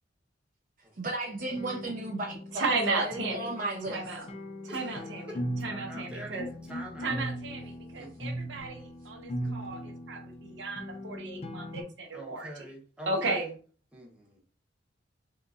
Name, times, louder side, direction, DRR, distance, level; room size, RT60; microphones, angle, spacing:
voice 1, 1.0-4.1, right 2 dB, 45° right, -1 dB, 0.6 m, -34 dB
sound 1, 1.4-11.8, equal, 35° left, 0.4 m, -39 dB
voice 2, 2.5-3.5 3.9-4.2 4.6-5.4 5.6-6.5 7.0-12.6 13.1-13.5, right 3 dB, 80° right, 2 dB, 0.8 m, -34 dB
voice 3, 4.7-7.2 8.0-8.4 9.4-9.9 12.1-13.5 13.9-14.4, right 1 dB, 5° right, -2 dB, 0.7 m, -46 dB
3.6 x 2.8 x 2.4 m, 0.40 s
head